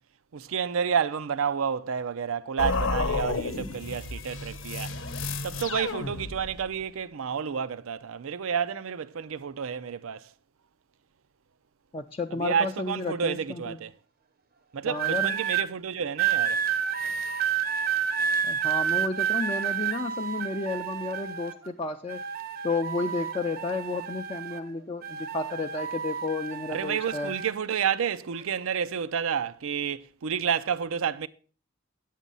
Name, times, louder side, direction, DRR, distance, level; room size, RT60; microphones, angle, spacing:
voice 1, 0.3-5.0 5.4-10.3 12.3-13.9 14.7-16.6 26.7-31.3, right 7 dB, 85° right, 0.5 m, -30 dB
sound 1, 2.6-6.7, left 3 dB, 65° left, 0.8 m, -31 dB
voice 2, 11.9-13.8 14.9-15.3 18.4-22.2 22.6-27.4, left 3 dB, 30° left, 0.5 m, -32 dB
sound 2, 14.9-15.6 16.2-21.7 22.1-24.7 25.0-27.5 28.3-28.6, right 8 dB, 45° right, 0.7 m, -30 dB
9.1 x 7.4 x 5.4 m
head